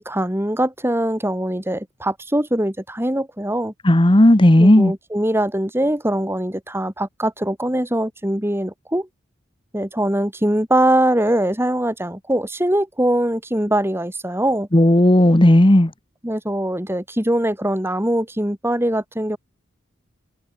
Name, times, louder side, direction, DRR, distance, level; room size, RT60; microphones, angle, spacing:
voice 1, 0.0-3.7 4.6-9.1 9.7-14.7 16.2-19.4, right 1 dB, 10° right, 3.8 m, -22 dB
voice 2, 3.8-4.9 14.7-15.9, left 1 dB, 25° left, 1.2 m, -12 dB
head